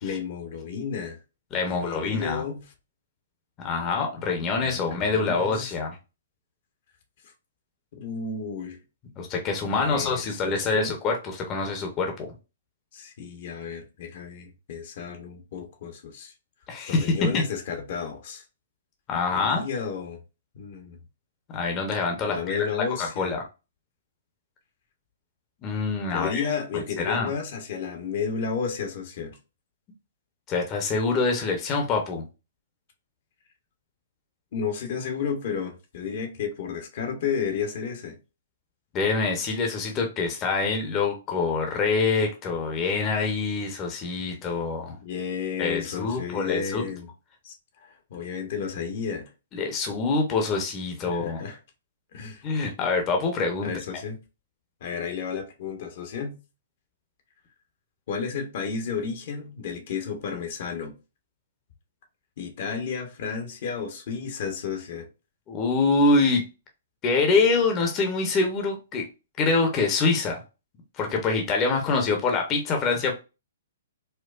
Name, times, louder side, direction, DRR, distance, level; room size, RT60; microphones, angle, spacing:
voice 1, 0.0-1.2 1.7-2.6 4.6-5.8 7.9-8.8 9.6-10.9 12.9-16.3 16.9-18.4 19.3-20.2 20.5-21.0 22.3-23.3 26.1-29.4 34.5-38.2 45.0-47.1 47.4-47.5 47.8-49.3 51.1-51.6 52.1-52.4 53.6-54.2 54.8-56.4 58.1-61.0 62.4-65.1, left 6 dB, 55° left, 0.9 m, -32 dB
voice 2, 1.5-2.4 3.6-6.0 9.2-12.3 16.7-17.4 19.1-19.7 21.5-22.6 22.9-23.4 25.6-27.3 30.5-32.3 38.9-45.0 45.6-46.8 49.5-51.4 52.4-54.0 65.5-66.4 67.0-69.0 69.4-70.4 71.0-73.1, left 4 dB, 25° left, 0.8 m, -25 dB
4.4 x 2.2 x 2.4 m
hypercardioid pair, 125°, 0 cm